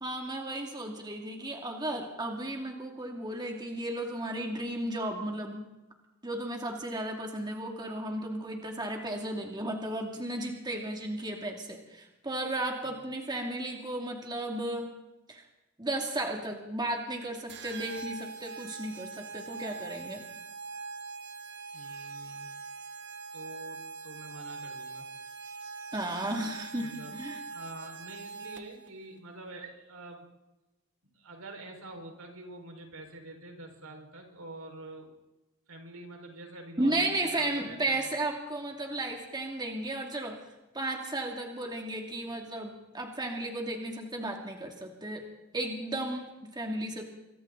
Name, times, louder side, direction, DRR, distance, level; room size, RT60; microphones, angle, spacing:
voice 1, 0.0-5.6 6.2-14.9 15.3-15.4 15.8-20.2 25.9-27.4 36.8-40.4 40.7-45.2 45.5-47.0, right 1 dB, 20° right, 1 dB, 2.6 m, -34 dB
sound 1, 17.5-28.9, right 4 dB, 55° right, 1.7 m, -43 dB
voice 2, 21.7-22.5 23.3-25.1 26.8-27.2 27.5-30.3 31.2-35.1 35.7-38.0, right 2 dB, 80° right, 2 dB, 5.2 m, -46 dB
27.5 x 24.0 x 4.1 m, 1.0 s
head